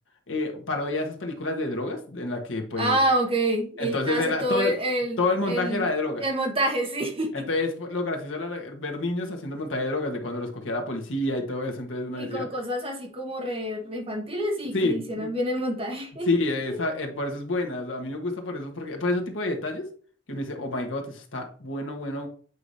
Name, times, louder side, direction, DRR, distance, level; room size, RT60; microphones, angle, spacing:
voice 1, 0.3-3.0 3.8-4.7 5.2-6.2 7.3-12.5 14.7-15.3 16.3-19.9 20.3-22.3, left 2 dB, 80° left, 3 dB, 1.3 m, -29 dB
voice 2, 2.8-5.2 5.5-5.9 6.2-7.5 12.1-16.3, right 1 dB, 30° right, 2 dB, 1.3 m, -27 dB
8.2 x 4.8 x 2.7 m, 0.44 s
head